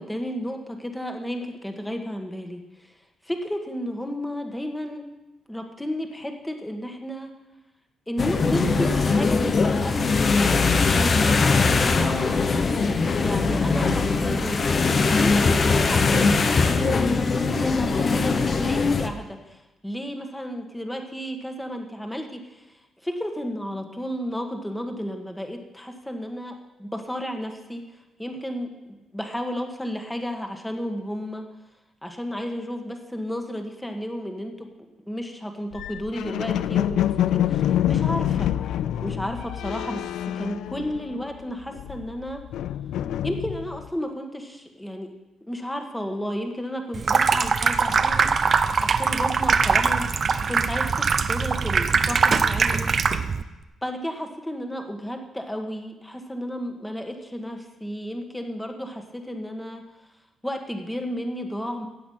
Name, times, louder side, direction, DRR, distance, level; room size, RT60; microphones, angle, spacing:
voice 1, 0.0-2.9 3.2-5.1 5.5-7.3 8.1-10.3 11.0-12.4 13.2-27.8 28.2-28.7 29.1-31.5 32.0-34.7 35.0-37.5 37.9-38.6 39.0-40.1 40.3-42.4 43.2-45.1 45.4-48.3 48.8-53.0 53.8-59.8 60.4-61.9, equal, 5° left, 4 dB, 1.7 m, -32 dB
sound 1, 8.2-19.1, left 4 dB, 40° left, 1.0 m, -21 dB
sound 2, 35.7-41.3 41.6-43.9, left 11 dB, 80° left, 0.4 m, -26 dB
Water tap faucet / Sink (filling or washing), 46.9-53.4, right 5 dB, 45° right, 0.7 m, -22 dB
15.0 x 8.5 x 5.7 m, 1.0 s
cardioid pair, 90°, 0 cm